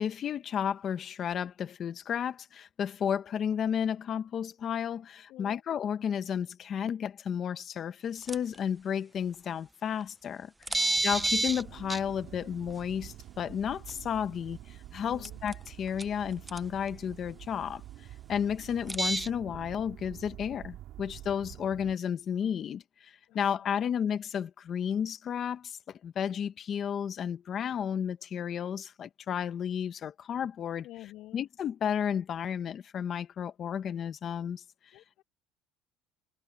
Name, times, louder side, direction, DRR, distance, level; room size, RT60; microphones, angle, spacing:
voice 1, 0.0-10.5 11.0-30.8 31.3-34.6, left 8 dB, 35° left, 0.9 m, -32 dB
voice 2, 5.3-5.6 10.7-11.2 15.0-15.4 23.3-24.0 30.8-31.4 34.9-35.2, left 16 dB, 55° left, 7.2 m, -50 dB
sound 1, 8.3-8.6 10.0-10.1 10.7-11.6 11.9-12.0 13.9-14.0 15.2-15.7 16.0-16.1 16.5-16.6 18.9-19.3, right 2 dB, 10° right, 0.4 m, -28 dB
sound 2, 10.9-22.0, right 13 dB, 50° right, 3.7 m, -48 dB
cardioid pair, 160°, 0 cm